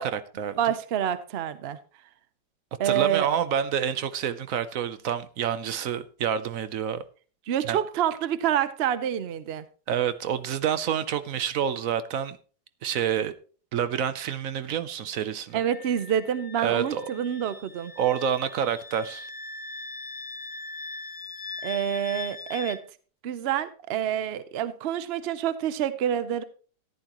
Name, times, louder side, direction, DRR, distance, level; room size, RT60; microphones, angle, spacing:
voice 1, 0.0-0.6 2.8-7.0 7.7-7.8 9.9-12.4 12.8-13.3 13.7-15.6 16.6-17.1 18.0-19.3, right 8 dB, 60° right, 0.9 m, -28 dB
voice 2, 0.6-1.8 2.8-3.3 7.5-9.7 15.5-17.9 21.6-22.8 23.2-26.4, right 10 dB, 75° right, 0.5 m, -27 dB
Wind instrument woodwind instrument, 15.5-22.8, left 3 dB, 70° left, 0.4 m, -40 dB
14.0 x 11.0 x 3.0 m
omnidirectional pair, 2.0 m